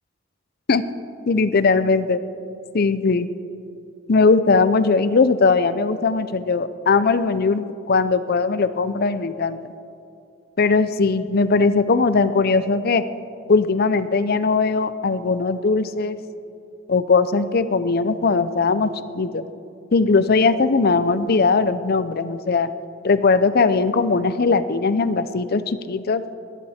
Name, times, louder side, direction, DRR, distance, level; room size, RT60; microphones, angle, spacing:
voice 1, 1.3-2.2 2.7-3.3 4.1-9.6 10.6-13.0 13.5-16.2 16.9-19.4 19.9-22.7 23.0-26.2, left 4 dB, 55° left, 13 dB, 0.6 m, -19 dB
21.0 x 14.5 x 4.3 m, 2.7 s
head